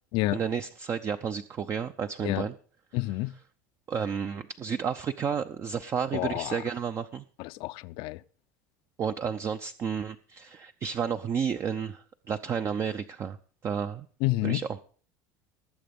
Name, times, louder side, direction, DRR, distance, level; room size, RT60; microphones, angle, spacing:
voice 1, 0.3-2.5 3.9-7.2 9.0-13.4 13.6-14.1 14.4-14.8, right 7 dB, 30° right, 0.7 m, -31 dB
voice 2, 2.9-3.3 6.1-6.6 7.4-8.2 14.2-14.6, left 19 dB, 65° left, 0.6 m, -29 dB
19.5 x 7.7 x 5.3 m
supercardioid pair, 125°, 9 cm